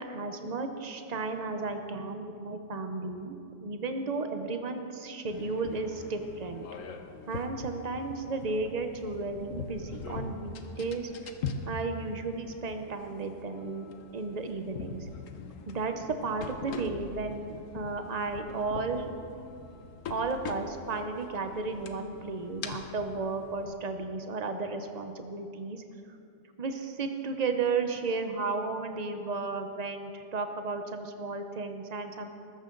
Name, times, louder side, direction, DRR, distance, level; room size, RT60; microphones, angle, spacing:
voice 1, 0.0-3.4 3.6-6.7 7.3-11.1 11.7-15.1 15.7-19.1 20.1-25.8 26.6-32.3, right 3 dB, 65° right, 6 dB, 0.4 m, -34 dB
sound 1, 5.3-23.8, left 4 dB, 55° left, 1.1 m, -42 dB
20.0 x 14.5 x 3.9 m, 2.6 s
omnidirectional pair, 2.0 m